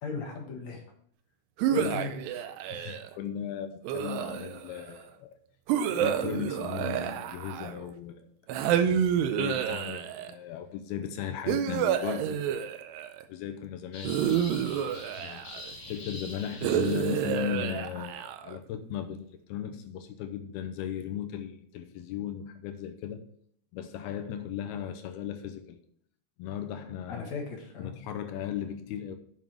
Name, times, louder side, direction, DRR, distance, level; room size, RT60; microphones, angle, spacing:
voice 1, 0.0-0.8 1.7-2.1 27.1-27.9, left 4 dB, 55° left, 2.2 m, -36 dB
sound 1, 1.6-3.1 3.8-4.8 5.7-7.9 8.5-10.3 11.5-13.2 14.0-15.7 16.6-18.6, right 9 dB, 85° right, 2.8 m, -29 dB
voice 2, 2.7-5.4 5.9-8.3 9.2-12.4 13.3-14.2 15.2-23.2 23.7-25.8 26.4-27.2 27.8-29.2, left 10 dB, 80° left, 2.6 m, -37 dB
sound 2, 13.9-17.6, left 2 dB, 40° left, 3.1 m, -45 dB
7.3 x 7.3 x 4.7 m
omnidirectional pair, 4.7 m